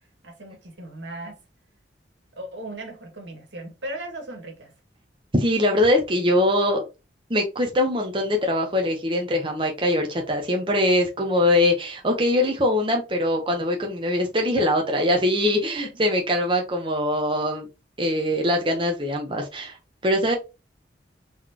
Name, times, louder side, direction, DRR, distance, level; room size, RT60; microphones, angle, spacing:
voice 1, 0.2-1.4 2.3-4.7 15.4-16.1, right 1 dB, 85° right, 1.9 m, -37 dB
voice 2, 5.3-6.9 7.3-17.7 18.0-19.8 20.0-20.3, left 1 dB, 30° right, 1.0 m, -22 dB
4.4 x 3.9 x 2.9 m
head